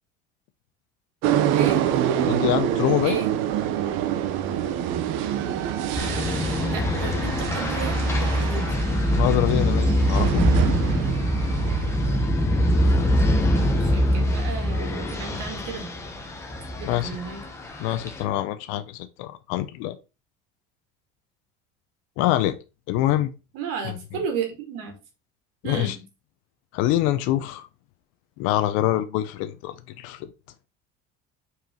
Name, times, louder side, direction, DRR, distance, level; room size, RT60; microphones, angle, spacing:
sound 1, 1.2-12.2, right 10 dB, 70° right, 0.8 m, -26 dB
voice 1, 2.3-3.2 9.1-10.4 16.8-17.1 17.8-20.0 22.2-22.6 22.9-23.3 23.8-24.0 25.6-26.0 26.7-27.7 28.4-30.3, left 14 dB, 75° left, 0.7 m, -25 dB
sound 2, 6.0-18.2, equal, 10° left, 1.0 m, -24 dB
voice 2, 6.7-8.7 13.5-15.9 16.8-17.4 23.5-25.0 25.6-26.0, right 5 dB, 85° right, 2.2 m, -33 dB
5.7 x 4.7 x 3.8 m
cardioid pair, 170°, 21 cm